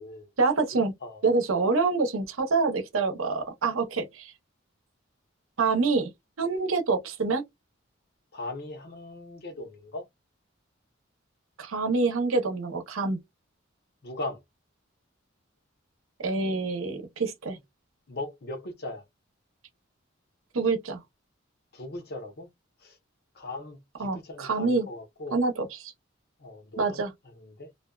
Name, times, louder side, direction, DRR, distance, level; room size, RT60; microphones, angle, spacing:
voice 1, 0.4-0.9 1.2-4.3 5.6-6.1 6.4-7.4 11.6-13.2 16.2-17.6 20.5-21.0 24.0-24.9 25.3-25.9 26.8-27.1, right 4 dB, 90° right, 0.7 m, -26 dB
voice 2, 8.3-10.0 14.0-14.4 18.1-19.0 21.7-22.5 22.8-23.0 23.3-25.4 26.4-27.1 27.3-27.7, left 2 dB, 55° left, 0.8 m, -39 dB
2.5 x 2.1 x 2.3 m
head